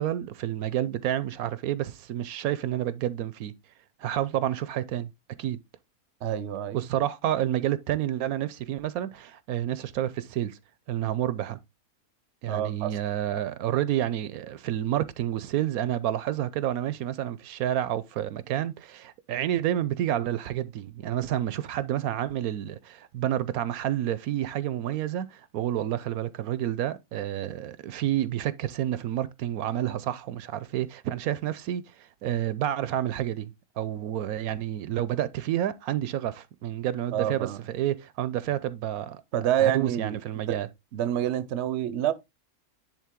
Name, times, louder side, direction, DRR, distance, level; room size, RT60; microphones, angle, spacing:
voice 1, 0.0-3.5 4.0-5.1 5.4-5.6 6.7-10.6 10.9-11.6 12.4-39.2 39.6-40.7, right 12 dB, 80° right, 1.1 m, -29 dB
voice 2, 6.2-6.8 12.5-12.9 37.1-37.6 39.3-40.6 40.9-42.1, right 11 dB, 60° right, 0.8 m, -27 dB
10.0 x 3.5 x 3.7 m
omnidirectional pair, 1.6 m